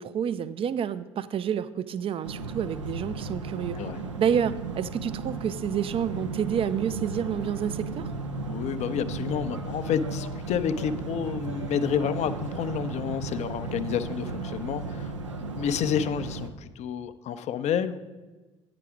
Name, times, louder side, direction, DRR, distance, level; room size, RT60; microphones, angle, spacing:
voice 1, 0.0-3.8 4.2-8.1, right 8 dB, 40° right, 15 dB, 0.5 m, -29 dB
sound 1, 2.2-16.5, right 3 dB, 85° right, 0.5 m, -35 dB
voice 2, 8.5-18.0, left 8 dB, 50° left, 12 dB, 0.5 m, -30 dB
9.1 x 6.0 x 4.9 m, 1.2 s
figure-of-eight pair, 55°, 15 cm